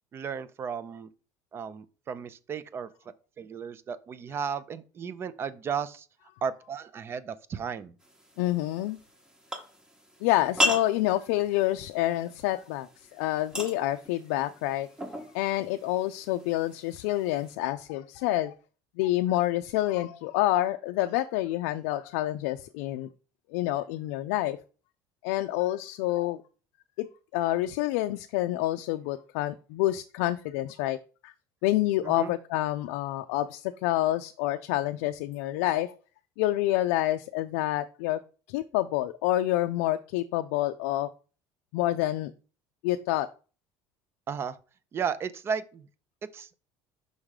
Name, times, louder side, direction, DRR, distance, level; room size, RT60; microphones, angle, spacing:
voice 1, 0.1-1.1 1.5-2.9 3.4-6.1 6.4-7.9 32.0-32.3 44.3-44.6 44.9-45.9 46.3-46.5, right 6 dB, 30° right, 0.5 m, -34 dB
sound 1, 8.0-17.5, left 1 dB, 10° right, 1.0 m, -37 dB
voice 2, 8.4-9.0 10.2-14.9 15.3-18.6 19.0-23.1 23.5-24.6 25.2-26.4 27.0-27.1 27.3-31.0 31.2-31.3 31.6-35.9 36.4-38.2 38.5-41.1 41.7-42.3 42.8-43.3, left 15 dB, 90° left, 0.3 m, -28 dB
5.4 x 3.7 x 4.8 m
cardioid pair, 125°, 8 cm